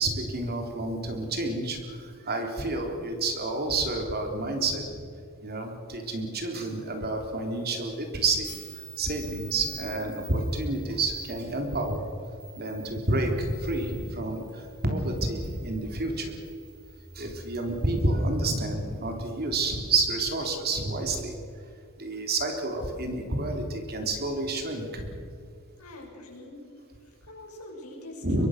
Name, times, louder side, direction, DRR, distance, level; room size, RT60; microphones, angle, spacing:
voice 1, 0.0-5.0 5.4-8.5 9.0-12.0 12.6-16.3 17.2-21.4 22.0-25.2 28.2-28.5, right 2 dB, 45° right, 3 dB, 3.5 m, -29 dB
sound 1, 8.4-18.0, right 3 dB, 20° right, 5.3 m, -48 dB
voice 2, 25.8-26.7 27.0-28.5, left 1 dB, 80° left, -1 dB, 6.8 m, -44 dB
24.0 x 22.5 x 6.6 m, 2.3 s
head